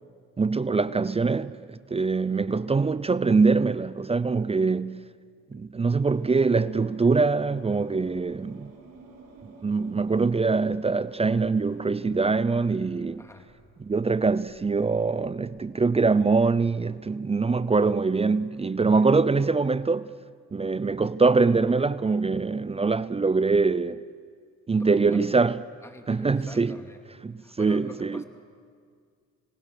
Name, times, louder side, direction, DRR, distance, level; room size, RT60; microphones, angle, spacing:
voice 1, 0.4-5.0 5.5-8.7 9.6-13.2 13.8-20.1 20.5-24.0 24.7-25.6 26.1-26.8 27.2-28.2, right 4 dB, 20° right, 0.5 m, -23 dB
sound 1, 6.0-14.6 15.4-16.0, right 3 dB, 60° right, 5.3 m, -51 dB
voice 2, 13.2-13.5 18.9-19.1 24.8-25.3 25.8-27.0 27.4-28.2, left 1 dB, 10° left, 2.4 m, -45 dB
29.5 x 18.5 x 6.7 m
cardioid pair, 90°, 30 cm